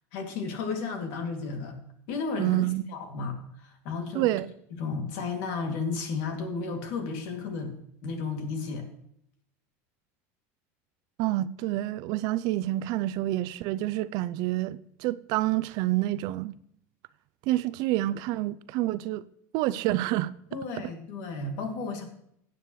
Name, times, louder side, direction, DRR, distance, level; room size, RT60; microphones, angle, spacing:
voice 1, 0.1-1.8 2.1-2.6 2.9-4.3 4.8-7.7 8.0-8.9 20.5-22.0, left 4 dB, 70° left, 2.5 m, -33 dB
voice 2, 2.4-2.9 4.1-4.5 11.2-16.6 17.5-19.2 19.5-20.3, right 16 dB, 60° right, 0.5 m, -28 dB
16.0 x 9.2 x 3.2 m
supercardioid pair, 130°, 8 cm